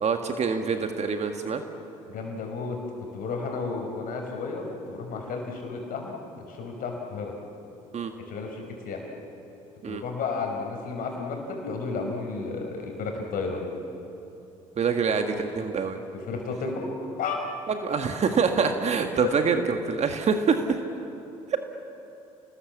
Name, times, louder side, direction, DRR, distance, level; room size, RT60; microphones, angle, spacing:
voice 1, 0.0-1.6 7.9-8.1 9.8-10.0 14.8-16.0 17.7-20.8 21.5-21.6, right 5 dB, 40° right, 6 dB, 1.8 m, -25 dB
voice 2, 2.1-7.3 8.3-9.0 9.9-13.7 15.1-15.4 16.3-16.9 17.2-17.4, left 4 dB, 55° left, 2 dB, 5.3 m, -33 dB
30.0 x 19.5 x 7.4 m, 2.9 s
hypercardioid pair, 60°, 17 cm